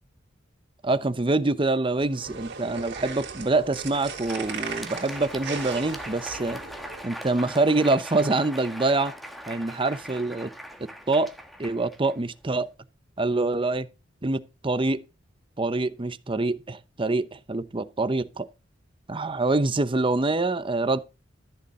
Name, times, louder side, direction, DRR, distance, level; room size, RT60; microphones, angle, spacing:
voice 1, 0.8-6.6 7.0-9.1 9.5-10.5 11.1-11.3 11.6-12.7 13.2-13.9 14.2-15.0 15.6-18.5 19.1-21.0, right 2 dB, 25° right, 0.8 m, -25 dB
sound 1, 2.0-7.0, right 5 dB, 60° right, 3.4 m, -38 dB
Crowd, 3.8-12.7, equal, ahead, 1.3 m, -41 dB
14.0 x 6.9 x 3.7 m
head